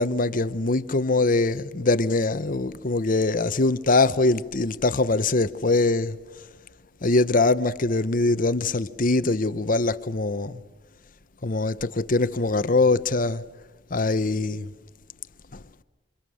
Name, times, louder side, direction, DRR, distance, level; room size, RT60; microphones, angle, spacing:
voice 1, 0.0-6.2 7.0-10.6 11.4-13.4 13.9-14.7 15.5-15.6, left 3 dB, 45° left, 0.9 m, -23 dB
28.5 x 27.0 x 6.4 m
head